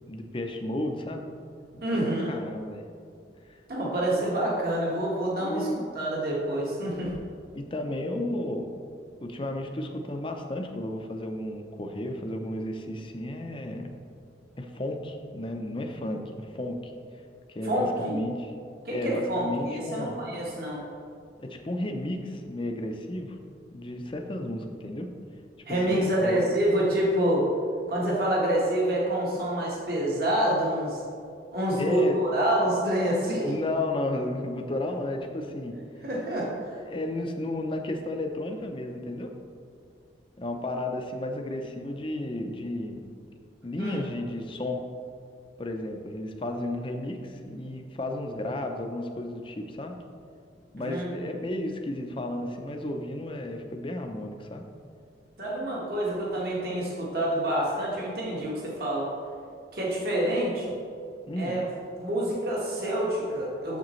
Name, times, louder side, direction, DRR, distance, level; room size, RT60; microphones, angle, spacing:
voice 1, 0.1-1.3 1.9-2.9 3.5-3.6 5.4-5.9 7.5-8.7 9.2-14.0 14.6-16.9 17.5-18.5 18.9-20.2 21.4-23.4 23.7-25.1 25.7-26.4 31.8-32.2 33.4-35.7 36.8-39.3 40.4-43.1 43.6-44.8 45.6-49.9 50.7-54.7 61.3-61.5, left 1 dB, 25° left, 4 dB, 0.5 m, -33 dB
voice 2, 1.8-2.3 3.7-5.7 5.9-7.1 17.6-18.2 18.8-20.8 25.7-27.5 27.9-31.0 31.5-33.5 36.0-36.8 43.8-44.0 50.8-51.3 55.4-59.1 59.7-60.7 61.4-61.7 62.0-63.8, right 1 dB, 55° right, -5 dB, 1.6 m, -27 dB
7.4 x 7.3 x 3.1 m, 2.4 s
head